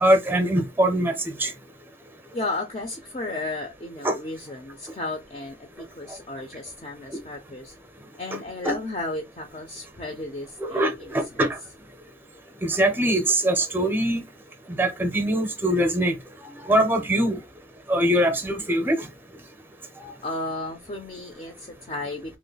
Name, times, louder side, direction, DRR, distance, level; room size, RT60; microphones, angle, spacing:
voice 1, 0.0-1.5 4.0-4.1 8.6-8.7 10.6-11.5 12.6-14.2 14.8-16.1 16.6-17.4 17.9-19.0 20.0-20.1, right 1 dB, 10° right, 0.6 m, -22 dB
voice 2, 2.3-7.7 8.1-11.4 20.2-22.4, left 2 dB, 35° left, 0.5 m, -34 dB
3.0 x 2.0 x 3.9 m
head